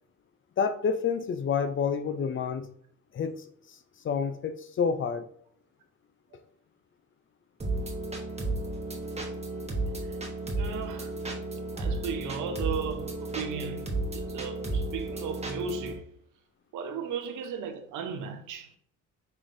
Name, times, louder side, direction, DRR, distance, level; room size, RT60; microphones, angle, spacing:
voice 1, 0.6-2.7 3.1-3.4 4.0-5.3, left 6 dB, 40° left, 0.5 m, -28 dB
sound 1, 7.6-15.9, right 2 dB, 20° right, 1.0 m, -33 dB
voice 2, 10.6-11.3 11.8-16.1 16.7-18.7, right 6 dB, 80° right, 0.8 m, -36 dB
5.5 x 3.2 x 2.6 m
cardioid pair, 90°, 30 cm